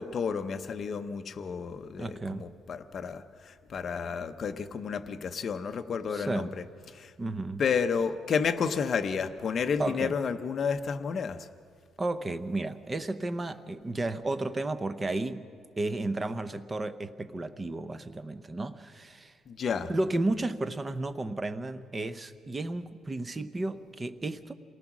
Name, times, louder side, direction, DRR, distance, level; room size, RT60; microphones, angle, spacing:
voice 1, 0.0-7.1 7.6-11.5 19.5-19.9, left 6 dB, 40° left, 0.8 m, -31 dB
voice 2, 2.0-2.5 6.1-6.5 7.2-7.6 9.8-10.2 12.0-15.5 15.8-19.3 19.9-24.5, right 2 dB, 20° right, 0.7 m, -33 dB
28.0 x 19.0 x 6.1 m
cardioid pair, 155°, 0 cm